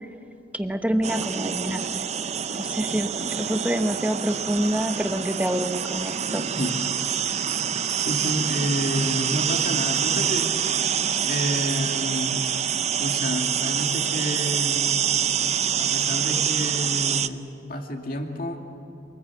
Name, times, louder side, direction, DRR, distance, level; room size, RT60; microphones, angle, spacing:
voice 1, 0.5-2.1 2.5-6.4, right 1 dB, 10° right, 7 dB, 1.0 m, -27 dB
sound 1, 1.0-17.3, right 8 dB, 35° right, 0.6 m, -26 dB
voice 2, 8.0-10.6 11.2-12.4 12.9-15.1 15.7-18.6, equal, 50° left, 3 dB, 2.5 m, -29 dB
28.0 x 20.0 x 8.4 m, 2.8 s
head